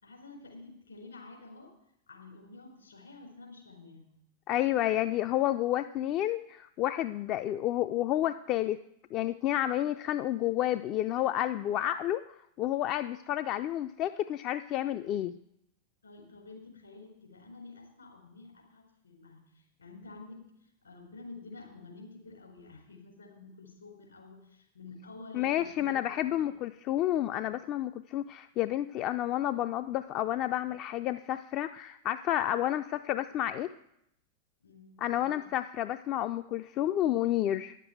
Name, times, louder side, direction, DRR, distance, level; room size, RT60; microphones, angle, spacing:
voice 1, 0.0-1.7 2.1-4.1 16.0-26.5 34.6-35.5, left 3 dB, 75° left, 0 dB, 4.1 m, -50 dB
voice 2, 4.5-8.8 9.1-15.3 25.3-33.7 35.0-37.8, left 13 dB, 40° left, 10 dB, 0.4 m, -30 dB
10.0 x 7.4 x 7.9 m, 0.77 s
figure-of-eight pair, 90°, 0 cm